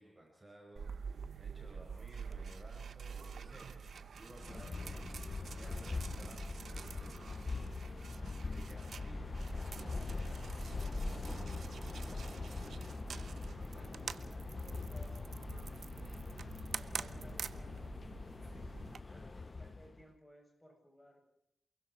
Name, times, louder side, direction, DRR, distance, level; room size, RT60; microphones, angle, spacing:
voice 1, 0.0-7.4 7.8-8.0 8.4-9.4 19.0-19.3, right 1 dB, 20° right, 0 dB, 5.4 m, -57 dB
sound 1, 0.8-19.0, right 6 dB, 85° right, 0.9 m, -47 dB
sound 2, 4.3-20.0, left 3 dB, 30° left, 0.7 m, -42 dB
voice 2, 10.5-16.2 16.7-18.0 18.3-18.6 19.1-21.3, equal, 10° left, 1 dB, 7.7 m, -62 dB
28.5 x 22.5 x 4.5 m, 0.74 s
wide cardioid pair, 175°, 0 cm